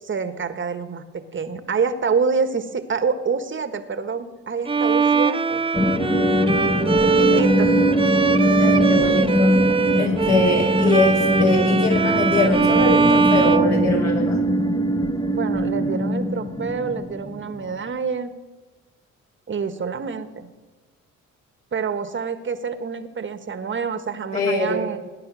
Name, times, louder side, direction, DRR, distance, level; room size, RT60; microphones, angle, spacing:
voice 1, 0.0-5.6 7.0-7.7 15.3-18.3 19.5-20.5 21.7-25.0, right 5 dB, 40° right, 10 dB, 1.4 m, -27 dB
Bowed string instrument, 4.7-14.5, right 5 dB, 20° right, 0.6 m, -21 dB
sound 1, 5.7-17.7, equal, 15° left, 1.3 m, -21 dB
voice 2, 8.6-9.6 10.0-14.4 24.3-24.8, left 2 dB, 65° left, 0 dB, 5.3 m, -23 dB
18.0 x 10.0 x 6.3 m, 1.3 s
cardioid pair, 90°, 30 cm